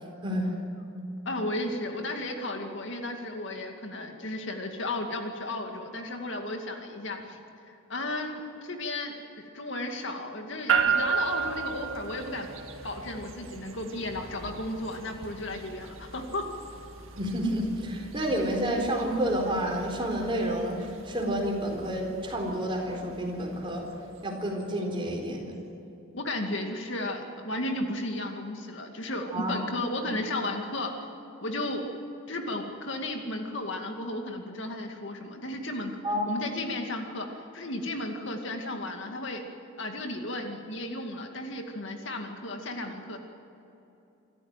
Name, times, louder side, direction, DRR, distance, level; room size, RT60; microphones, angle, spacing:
voice 1, 1.3-7.4 7.6-12.5 12.8-16.5 26.1-30.9 31.4-31.9 32.3-36.0 36.3-37.3 37.5-39.4 39.8-43.2, left 1 dB, 60° left, 3 dB, 2.3 m, -34 dB
sound 1, 10.7-25.0, right 6 dB, 80° right, 2.0 m, -35 dB
voice 2, 17.1-20.8 21.0-23.8 24.2-25.6 29.3-29.6 36.0-36.3, equal, 25° right, 1 dB, 4.1 m, -29 dB
26.5 x 14.0 x 9.1 m, 2.9 s
head